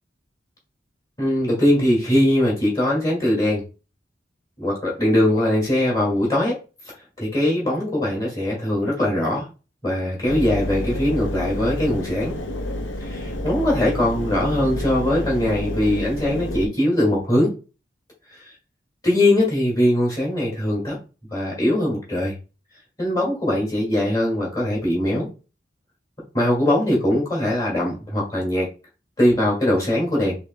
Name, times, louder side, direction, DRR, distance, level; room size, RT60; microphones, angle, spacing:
voice 1, 1.2-3.6 4.6-6.5 7.2-9.5 9.8-12.3 13.0-17.5 18.3-18.4 19.0-21.0 21.3-22.3 23.0-25.3 26.3-28.7 29.2-30.4, left 1 dB, 20° left, -4 dB, 2.1 m, -21 dB
Engine, 10.3-16.7, left 1 dB, 90° left, 0.7 m, -29 dB
5.4 x 3.7 x 2.3 m, 0.32 s
head